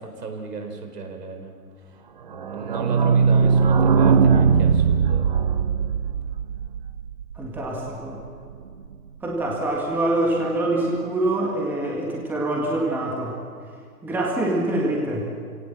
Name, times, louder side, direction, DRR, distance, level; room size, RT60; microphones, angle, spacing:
voice 1, 0.0-1.7 2.2-5.3, right 4 dB, 70° right, 5 dB, 4.7 m, -35 dB
sound 1, 2.3-7.9 8.2-8.3 8.5-8.6 8.9-9.0, right 6 dB, 30° right, 0.7 m, -19 dB
voice 2, 7.4-8.2 9.2-13.4 14.0-15.3, right 1 dB, 5° right, -2 dB, 1.7 m, -25 dB
28.5 x 17.5 x 7.4 m, 2.1 s
hypercardioid pair, 160°, 50 cm